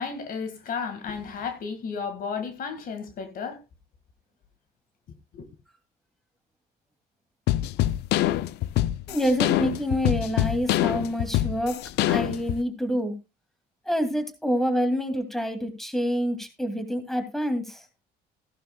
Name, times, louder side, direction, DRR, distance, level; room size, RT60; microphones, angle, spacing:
voice 1, 0.0-3.6 5.3-5.5, left 5 dB, 55° left, 1.8 m, -33 dB
sound 1, 7.5-12.6, left 14 dB, 80° left, 0.6 m, -25 dB
voice 2, 9.1-11.8 12.1-13.1 13.9-17.8, equal, ahead, 2.3 m, -27 dB
15.5 x 11.5 x 2.2 m
cardioid pair, 110°, 17 cm